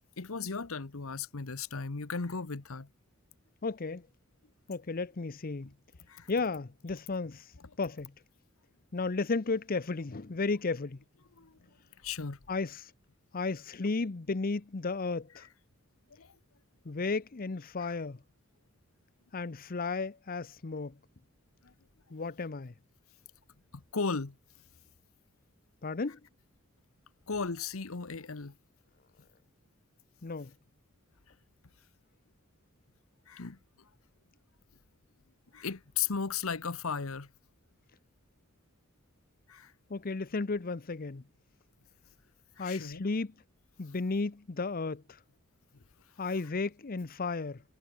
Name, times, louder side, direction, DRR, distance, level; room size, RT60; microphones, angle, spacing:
voice 1, 0.2-2.9 6.1-6.3 11.4-11.6 12.0-12.4 16.2-16.3 17.8-17.9 21.6-21.7 23.7-24.4 27.3-28.5 33.3-33.6 35.5-37.3 39.5-39.7 42.6-43.0, left 5 dB, 80° left, 1.1 m, -36 dB
voice 2, 3.6-4.0 4.7-5.7 6.3-7.5 7.8-8.1 8.9-11.0 12.5-12.9 13.3-15.5 16.9-18.2 19.3-20.9 22.1-22.7 25.8-26.2 30.2-30.5 39.9-41.2 42.6-43.3 43.8-45.2 46.2-47.6, left 3 dB, 45° left, 0.7 m, -34 dB
head